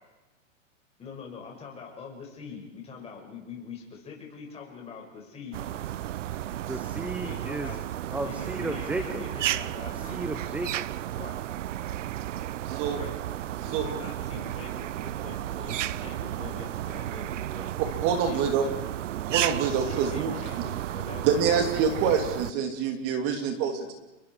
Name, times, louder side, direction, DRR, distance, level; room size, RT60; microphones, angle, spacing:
voice 1, 1.0-5.7 7.2-7.8 8.1-10.2 11.2-11.3 12.9-13.1 13.6-17.7 18.2-18.7 19.7-22.1, left 5 dB, 15° left, 0 dB, 6.4 m, -43 dB
sound 1, 5.5-22.5, right 12 dB, 70° right, 0.9 m, -33 dB
voice 2, 6.7-7.8 8.1-9.3 9.9-10.8, right 2 dB, 5° right, 9 dB, 0.9 m, -34 dB
voice 3, 12.7-13.0 13.6-13.9 17.8-18.7 19.2-20.3 21.2-23.9, right 7 dB, 35° right, 5 dB, 3.0 m, -26 dB
29.5 x 22.0 x 4.9 m, 1.1 s
hypercardioid pair, 145°, 39 cm